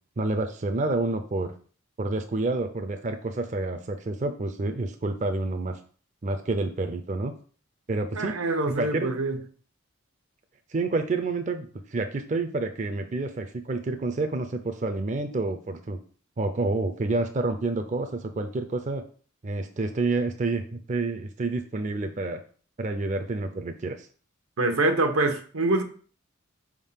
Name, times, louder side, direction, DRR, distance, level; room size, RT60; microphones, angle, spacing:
voice 1, 0.2-1.5 2.0-5.8 6.2-7.3 7.9-8.3 8.7-9.1 10.7-16.0 16.4-19.0 19.4-22.4 22.8-24.1, right 2 dB, 35° right, 6 dB, 0.4 m, -29 dB
voice 2, 8.1-9.4 24.6-25.8, right 2 dB, 90° right, 6 dB, 1.0 m, -25 dB
4.9 x 3.6 x 5.6 m, 0.43 s
head